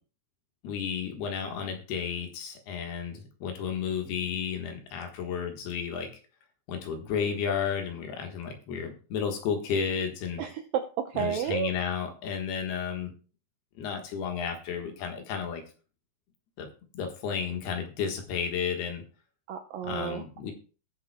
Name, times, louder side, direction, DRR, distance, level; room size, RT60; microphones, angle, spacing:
voice 1, 0.6-6.1 6.7-10.4 11.1-13.1 13.8-15.6 16.6-16.7 16.9-19.0 19.9-20.5, left 7 dB, 70° left, 4 dB, 3.3 m, -32 dB
voice 2, 10.4-11.7 19.5-20.2, right 9 dB, 80° right, 4 dB, 2.0 m, -31 dB
20.0 x 6.9 x 2.2 m, 0.36 s
omnidirectional pair, 5.0 m